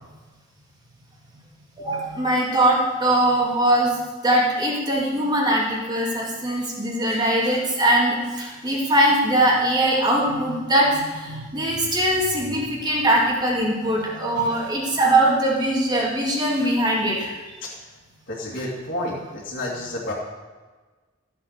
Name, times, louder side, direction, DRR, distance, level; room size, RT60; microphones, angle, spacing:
voice 1, 1.8-4.0 4.2-17.3, right 1 dB, 20° right, -3 dB, 2.7 m, -21 dB
voice 2, 18.3-20.1, left 1 dB, 50° left, -9 dB, 2.5 m, -30 dB
14.0 x 7.6 x 6.7 m, 1.3 s
head